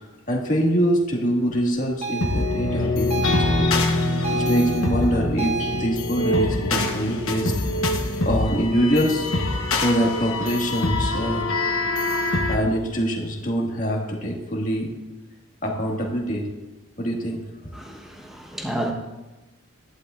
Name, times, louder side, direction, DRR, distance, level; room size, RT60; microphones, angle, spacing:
voice 1, 0.3-3.2 3.6-3.7 4.3-7.5 8.3-9.3 9.7-11.5 12.5-14.9 15.6-16.5 17.0-17.4, equal, 40° left, -2 dB, 1.9 m, -24 dB
sound 1, 2.0-5.9, right 4 dB, 30° right, 0.7 m, -32 dB
sound 2, 2.2-12.6, left 2 dB, 85° left, 1.2 m, -24 dB
voice 2, 17.7-18.9, right 1 dB, ahead, 0 dB, 1.1 m, -31 dB
14.5 x 11.0 x 2.5 m, 1.1 s
head